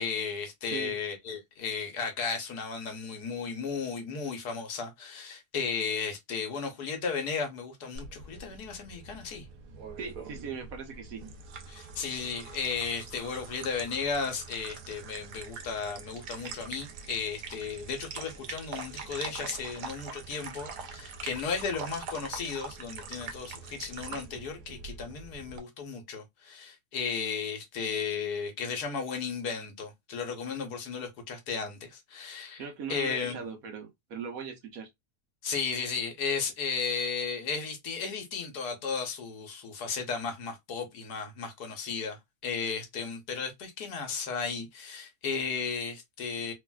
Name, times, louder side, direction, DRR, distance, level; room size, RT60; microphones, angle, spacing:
voice 1, 0.0-9.5 11.7-32.6 32.9-33.4 35.4-46.5, left 5 dB, 75° left, 1.4 m, -34 dB
sound 1, 8.0-25.6, right 5 dB, 85° right, 1.2 m, -43 dB
voice 2, 10.0-11.2 32.6-34.9, right 6 dB, 65° right, 1.1 m, -39 dB
3.2 x 2.4 x 2.2 m
omnidirectional pair, 1.7 m